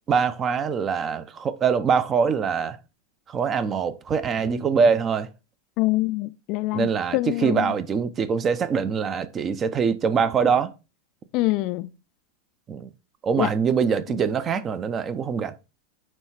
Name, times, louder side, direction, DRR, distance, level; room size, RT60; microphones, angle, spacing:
voice 1, 0.1-2.8 3.3-5.3 6.7-10.7 12.7-12.9 13.2-15.5, right 6 dB, 25° right, 0.6 m, -23 dB
voice 2, 5.8-7.8 11.3-11.9 13.3-13.5, left 19 dB, 40° left, 0.4 m, -25 dB
8.9 x 3.2 x 4.3 m
figure-of-eight pair, 90°, 0 cm